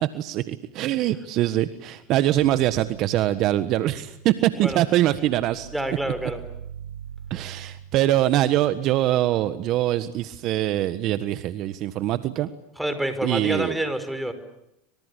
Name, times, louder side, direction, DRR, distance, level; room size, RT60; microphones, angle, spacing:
voice 1, 0.0-5.7 7.3-12.5 13.2-13.8, right 13 dB, 50° right, 13 dB, 1.4 m, -23 dB
sound 1, 2.3-9.8 10.2-11.1, right 9 dB, 85° right, 2.2 m, -43 dB
voice 2, 5.7-6.4 12.8-14.3, right 1 dB, 5° right, 9 dB, 5.2 m, -27 dB
25.5 x 25.0 x 8.5 m, 0.82 s
hypercardioid pair, 110°, 0 cm